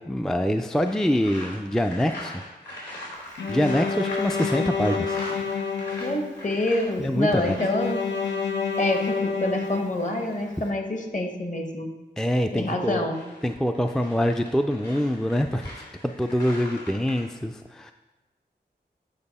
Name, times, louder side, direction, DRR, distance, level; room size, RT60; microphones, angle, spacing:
voice 1, 0.0-2.3 3.5-5.2 7.0-7.6 12.2-13.1 13.4-15.7 16.0-17.9, equal, 5° left, 6 dB, 0.3 m, -25 dB
sound 1, 0.8-10.7 12.8-17.2, left 1 dB, 70° left, 2.9 m, -41 dB
Bowed string instrument, 3.4-6.6 7.6-10.5, left 5 dB, 85° left, 0.8 m, -29 dB
voice 2, 6.0-8.0 8.8-11.9 12.5-13.2, left 1 dB, 45° left, 3 dB, 1.3 m, -27 dB
8.7 x 5.2 x 4.1 m, 1.1 s
wide cardioid pair, 60°, 18 cm